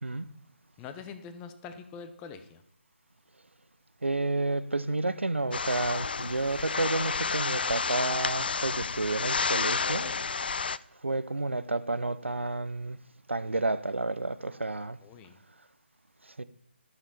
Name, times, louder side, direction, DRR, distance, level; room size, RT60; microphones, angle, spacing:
voice 1, 0.8-2.6 15.0-15.4, left 6 dB, 15° left, 0.6 m, -44 dB
voice 2, 4.0-10.1 11.0-13.0 13.3-15.0 16.2-16.4, right 2 dB, 80° right, 0.6 m, -30 dB
sound 1, 5.5-10.8, left 5 dB, 55° left, 0.4 m, -30 dB
12.5 x 7.1 x 4.2 m
figure-of-eight pair, 150°, 6 cm